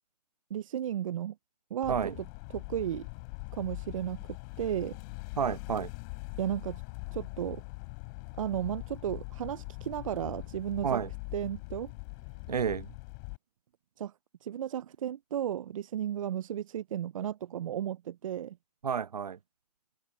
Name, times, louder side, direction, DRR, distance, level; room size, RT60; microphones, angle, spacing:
voice 1, 0.5-1.3 1.7-1.9 2.5-3.1 3.5-4.2 4.6-5.0 6.4-6.8 7.1-7.6 8.4-11.0 11.3-11.9 14.0-14.1 14.4-18.6, right 10 dB, 55° right, 0.5 m, -34 dB
sound 1, 1.8-13.4, left 33 dB, 30° left, 4.5 m, -42 dB
voice 2, 5.4-5.9 10.8-11.1 12.5-12.9 18.8-19.4, right 7 dB, 85° right, 0.8 m, -30 dB
hypercardioid pair, 145°, 20 cm